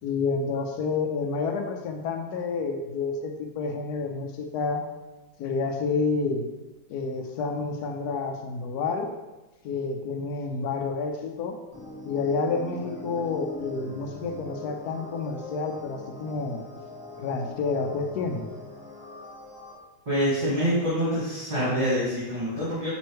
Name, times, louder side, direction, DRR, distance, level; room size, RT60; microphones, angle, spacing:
voice 1, 0.0-4.8 5.4-6.5 6.9-9.1 9.6-11.6 12.0-16.6 17.2-18.5, left 4 dB, 65° left, 4 dB, 1.1 m, -29 dB
sound 1, 11.7-19.7, left 2 dB, 15° left, 0.8 m, -42 dB
voice 2, 20.1-22.9, equal, 25° right, -10 dB, 2.1 m, -26 dB
8.9 x 3.5 x 3.1 m, 1.1 s
omnidirectional pair, 2.1 m